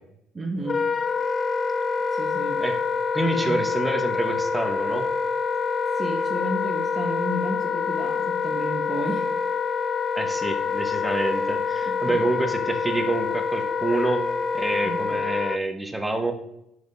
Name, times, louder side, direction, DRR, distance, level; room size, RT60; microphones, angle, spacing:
voice 1, 0.3-0.8 2.1-2.6 5.9-9.2 11.8-12.3 14.8-15.0, right 1 dB, 30° right, -1 dB, 1.5 m, -32 dB
Wind instrument woodwind instrument, 0.6-15.6, left 5 dB, 35° left, 0.4 m, -26 dB
voice 2, 3.1-5.1 10.1-14.2 14.5-16.3, right 2 dB, 10° right, 5 dB, 1.4 m, -27 dB
6.2 x 5.1 x 6.8 m, 0.81 s
supercardioid pair, 70°, 0 cm